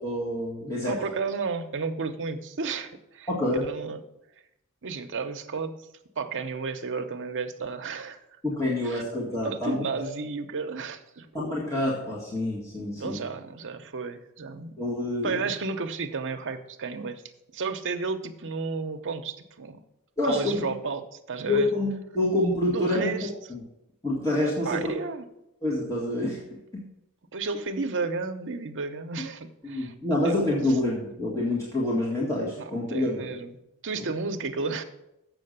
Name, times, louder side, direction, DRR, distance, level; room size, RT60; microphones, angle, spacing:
voice 1, 0.0-0.9 3.3-3.6 8.4-10.0 11.3-13.2 14.8-15.4 20.2-20.7 21.5-23.1 23.5-23.6 24.0-24.9 25.6-26.4 26.7-26.9 29.6-33.4, left 1 dB, 15° left, -5 dB, 1.8 m, -27 dB
voice 2, 0.8-3.3 3.7-4.0 4.8-5.7 6.2-8.2 8.8-9.0 9.4-11.7 12.9-14.7 15.2-17.2 17.5-19.8 20.2-21.7 22.7-23.3 24.6-25.2 27.3-29.9 30.2-30.6 32.6-33.5 33.8-34.8, right 4 dB, 60° right, 6 dB, 0.8 m, -32 dB
7.6 x 6.4 x 6.6 m, 0.86 s
head